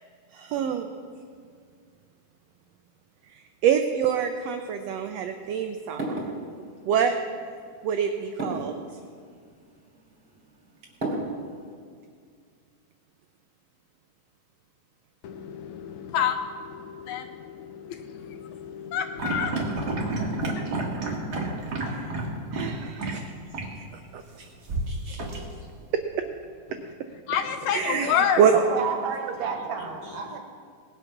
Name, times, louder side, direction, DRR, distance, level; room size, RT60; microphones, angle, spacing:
voice 1, 0.3-0.9 3.6-6.3 6.8-7.2 7.8-8.7 21.9-22.1 22.5-23.2 24.1-24.5 24.9-25.4 27.7-28.5, right 8 dB, 85° right, 7 dB, 1.4 m, -26 dB
sound 1, 4.4-11.8, right 2 dB, 20° right, 2.7 m, -38 dB
voice 2, 15.2-20.6 26.7-28.4, left 8 dB, 75° left, 8 dB, 1.8 m, -30 dB
sound 2, 19.2-22.7 23.0-23.1 23.5-23.7 24.7-25.8, right 2 dB, 40° right, 1.7 m, -29 dB
voice 3, 28.5-30.4, right 6 dB, 65° right, 4 dB, 2.3 m, -30 dB
19.0 x 8.0 x 6.0 m, 2.1 s
omnidirectional pair, 3.6 m